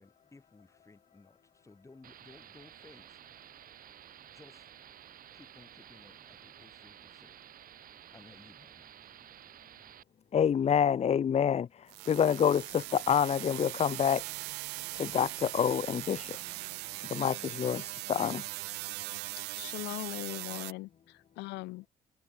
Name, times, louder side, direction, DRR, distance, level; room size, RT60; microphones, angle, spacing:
voice 1, 0.0-3.7 4.1-7.4 7.6-9.7, left 3 dB, 15° left, 7.3 m, -59 dB
sound 1, 2.0-10.0, right 11 dB, 55° right, 2.8 m, -53 dB
voice 2, 10.3-14.2 15.0-16.4 17.1-18.4, left 8 dB, 40° left, 1.2 m, -27 dB
sound 2, 11.9-20.7, right 22 dB, 85° right, 0.5 m, -40 dB
voice 3, 19.5-21.9, left 21 dB, 90° left, 1.3 m, -40 dB
cardioid pair, 110°, 17 cm